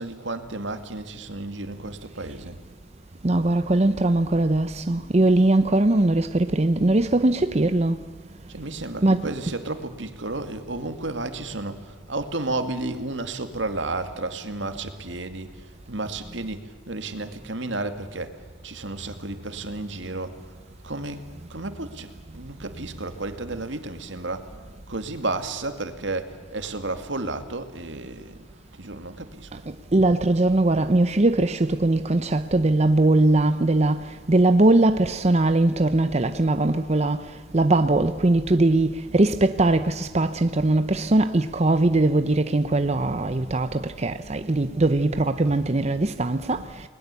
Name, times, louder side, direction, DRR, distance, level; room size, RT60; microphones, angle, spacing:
voice 1, 0.0-2.6 8.5-15.5 15.9-18.3 18.6-20.4 20.8-21.2 21.5-24.5 24.9-28.4 28.8-29.6, right 2 dB, 75° right, 2.2 m, -32 dB
voice 2, 3.2-8.0 9.0-9.2 29.7-46.9, right 2 dB, 35° right, 0.7 m, -21 dB
30.0 x 20.5 x 8.3 m
head